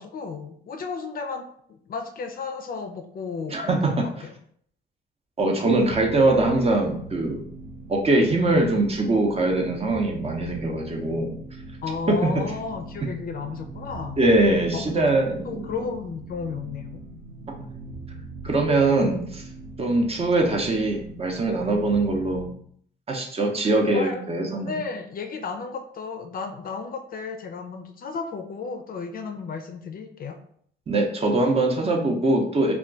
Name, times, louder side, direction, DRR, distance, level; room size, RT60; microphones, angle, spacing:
voice 1, 0.0-4.3 11.8-14.2 14.7-15.0 15.4-17.0 23.9-24.2 24.6-30.4, left 5 dB, 45° left, 6 dB, 0.4 m, -33 dB
voice 2, 3.5-3.9 5.4-7.4 7.9-11.3 12.1-12.2 14.2-15.6 18.4-19.4 19.8-22.4 23.1-24.7 30.9-32.7, right 2 dB, 30° right, 2 dB, 0.6 m, -22 dB
sound 1, 5.6-22.6, right 2 dB, 65° right, 1.0 m, -41 dB
2.3 x 2.2 x 3.7 m, 0.63 s
cardioid pair, 90°, 20 cm